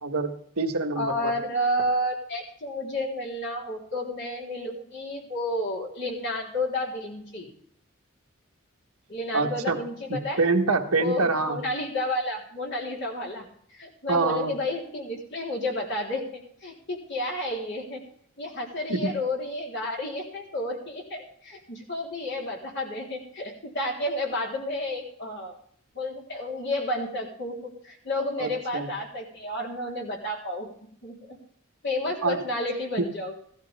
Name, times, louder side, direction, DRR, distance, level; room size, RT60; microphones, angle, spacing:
voice 1, 0.0-1.4 9.3-9.8 10.1-11.6 14.1-14.5 18.9-19.1 28.4-28.9 32.2-32.4 33.0-33.1, right 3 dB, 85° right, 5 dB, 1.5 m, -26 dB
voice 2, 1.0-7.5 9.1-10.4 11.0-13.5 13.7-18.0 18.4-25.5 26.0-30.7 31.0-31.4 31.8-33.3, left 1 dB, 55° left, -2 dB, 3.7 m, -31 dB
16.0 x 12.5 x 3.5 m, 0.64 s
head